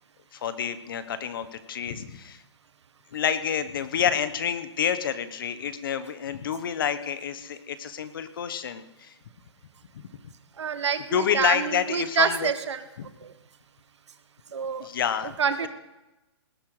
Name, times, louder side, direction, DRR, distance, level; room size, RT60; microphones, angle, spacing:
voice 1, 0.3-2.4 3.1-9.1 9.9-10.0 11.1-12.5 13.0-13.1 14.8-15.7, left 8 dB, 50° left, 12 dB, 1.2 m, -28 dB
voice 2, 10.6-12.8 13.2-13.3 14.5-14.9 15.4-15.7, right 7 dB, 80° right, 10 dB, 1.5 m, -27 dB
18.5 x 10.0 x 5.0 m, 0.99 s
hypercardioid pair, 170°, 15 cm